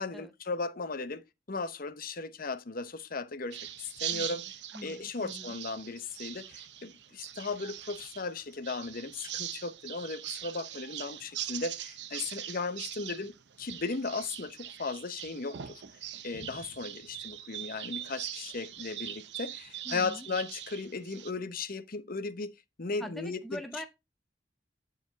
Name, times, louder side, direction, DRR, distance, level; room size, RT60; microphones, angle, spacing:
voice 1, 0.0-4.4 4.8-15.8 16.2-23.6, left 3 dB, 55° left, 0.9 m, -36 dB
sound 1, 3.5-21.3, right 11 dB, 70° right, 0.8 m, -41 dB
voice 2, 4.1-5.6 19.8-20.3 23.0-23.9, equal, ahead, 0.7 m, -44 dB
9.8 x 4.3 x 4.0 m
head